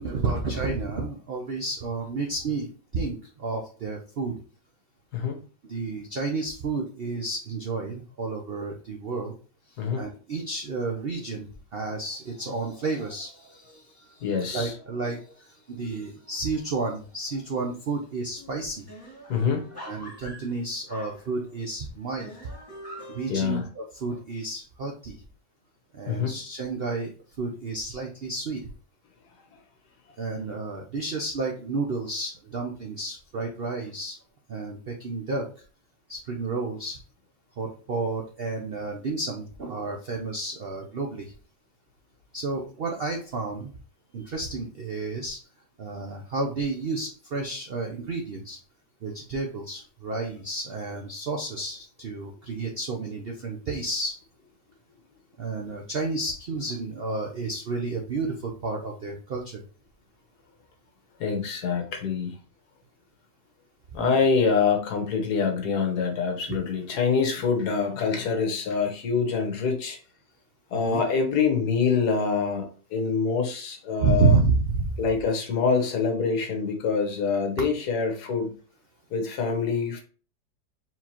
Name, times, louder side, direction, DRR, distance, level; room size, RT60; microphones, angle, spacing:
voice 1, 0.0-4.3 5.6-9.3 9.9-18.9 19.8-22.3 23.1-25.2 25.9-28.6 30.2-34.2 34.5-35.5 36.1-37.0 37.6-41.3 42.3-43.7 44.1-45.4 45.8-48.6 49.0-54.2 55.4-59.6 64.0-64.2 70.7-71.0 74.0-75.0, right 3 dB, 65° right, 1 dB, 0.5 m, -30 dB
voice 2, 14.2-14.7 19.3-19.6 23.3-23.6 26.1-26.3 61.2-62.4 63.9-70.0 70.7-74.4 75.0-78.5 79.1-80.0, left 5 dB, 65° left, 3 dB, 1.5 m, -25 dB
sound 1, 17.5-17.9 18.2-18.3 18.6-21.7 22.2-23.3, equal, 10° left, 1.9 m, -44 dB
4.5 x 3.8 x 2.9 m, 0.38 s
omnidirectional pair, 1.9 m